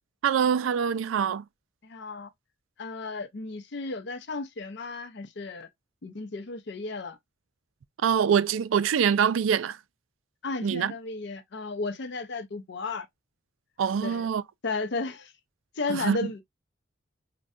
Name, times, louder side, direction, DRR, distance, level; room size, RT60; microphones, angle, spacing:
voice 1, 0.2-1.4 8.0-9.8 10.6-10.9 13.8-14.4 15.9-16.2, right 7 dB, 80° right, 0.4 m, -24 dB
voice 2, 1.8-2.3 2.8-5.7 6.0-7.2 10.4-13.1 14.0-14.3 14.6-15.3 15.7-16.4, left 3 dB, 60° left, 0.5 m, -34 dB
5.3 x 2.2 x 2.3 m
head